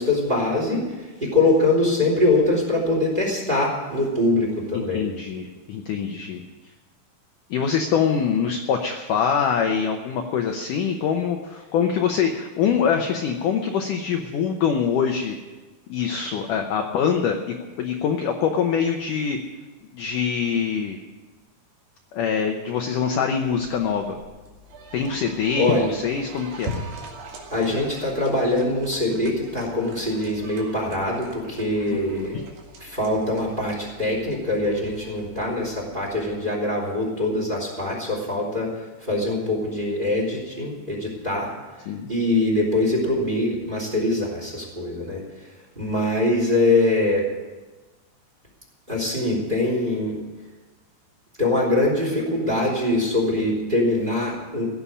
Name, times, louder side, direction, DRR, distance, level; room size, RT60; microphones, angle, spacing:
voice 1, 0.0-5.1 25.6-25.9 27.5-32.3 32.8-38.7 39.0-41.5 42.1-45.2 45.7-47.2 48.9-50.2 51.4-54.6, left 2 dB, 15° right, -1 dB, 3.0 m, -23 dB
voice 2, 4.7-6.4 7.5-15.4 15.9-19.4 19.9-21.0 22.1-24.1 24.9-26.7 31.9-32.4 41.9-42.1, left 7 dB, 70° left, 3 dB, 2.1 m, -24 dB
sound 1, 23.5-36.4, right 1 dB, 90° right, 4.1 m, -41 dB
16.5 x 7.0 x 9.8 m, 1.2 s
omnidirectional pair, 4.6 m